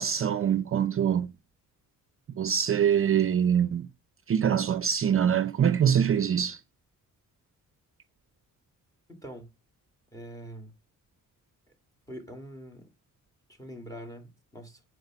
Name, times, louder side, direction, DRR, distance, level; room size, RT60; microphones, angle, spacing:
voice 1, 0.0-1.3 2.3-3.9 4.3-6.6, right 8 dB, 40° right, 0.5 m, -24 dB
voice 2, 9.1-9.5 10.1-10.7 12.1-12.9 13.5-14.8, equal, 10° left, 1.9 m, -44 dB
8.1 x 4.8 x 5.8 m
cardioid pair, 135°, 34 cm